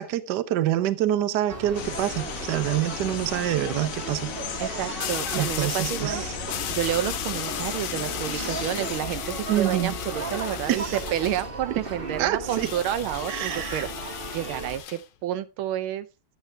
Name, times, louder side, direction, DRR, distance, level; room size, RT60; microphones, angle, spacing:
voice 1, 0.0-5.0 5.4-6.3 8.4-8.5 9.5-10.0 10.7-11.0 11.7-11.8 12.2-12.7 13.3-13.9, right 12 dB, 65° right, 1.2 m, -27 dB
sound 1, 1.5-14.8, right 2 dB, 30° right, 1.4 m, -36 dB
sound 2, 1.7-9.0, left 9 dB, 65° left, 0.8 m, -36 dB
sound 3, 1.8-2.2 5.0-6.1 6.5-11.5 12.5-15.0, left 12 dB, 80° left, 1.6 m, -36 dB
voice 2, 4.6-6.3 6.7-16.1, right 11 dB, 85° right, 1.5 m, -30 dB
11.0 x 8.3 x 3.3 m
omnidirectional pair, 2.3 m